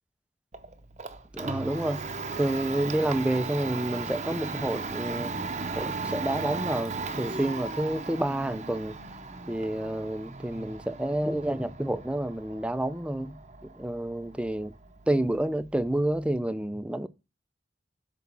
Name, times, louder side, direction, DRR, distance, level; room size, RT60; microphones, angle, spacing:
Domestic sounds home sounds, 0.5-16.4, right 4 dB, 40° right, 0.7 m, -37 dB
voice 1, 1.3-2.0 2.4-5.3 5.8-9.0 9.5-14.7 15.1-17.1, right 1 dB, 5° right, 0.5 m, -29 dB
8.1 x 3.6 x 5.8 m
head